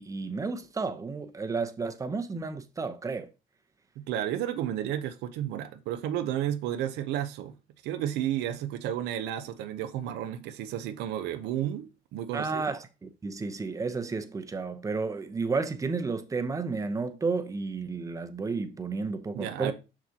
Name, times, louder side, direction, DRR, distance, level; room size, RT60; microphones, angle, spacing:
voice 1, 0.0-3.3 12.3-19.7, right 4 dB, 20° right, 0.8 m, -32 dB
voice 2, 4.0-7.5 7.8-12.7 19.3-19.7, right 11 dB, 85° right, 0.7 m, -32 dB
6.3 x 6.0 x 2.8 m
cardioid pair, 110°, 17 cm